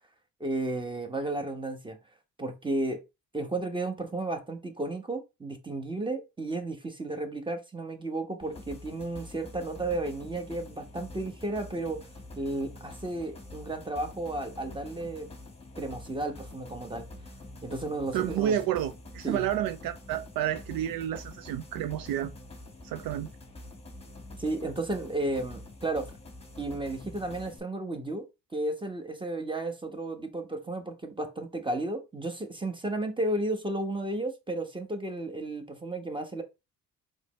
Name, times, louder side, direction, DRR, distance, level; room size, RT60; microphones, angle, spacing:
voice 1, 0.4-2.0 2.4-3.0 3.3-12.1 12.4-15.3 15.8-17.1 17.6-18.6 19.2-19.4 24.4-26.1 26.6-28.2 28.5-36.4, right 2 dB, 15° right, 1.2 m, -33 dB
sound 1, 8.4-27.6, left 2 dB, 15° left, 1.3 m, -46 dB
voice 2, 18.1-22.3 22.8-23.3, right 10 dB, 65° right, 0.5 m, -30 dB
4.0 x 3.2 x 3.2 m
supercardioid pair, 60°, 38 cm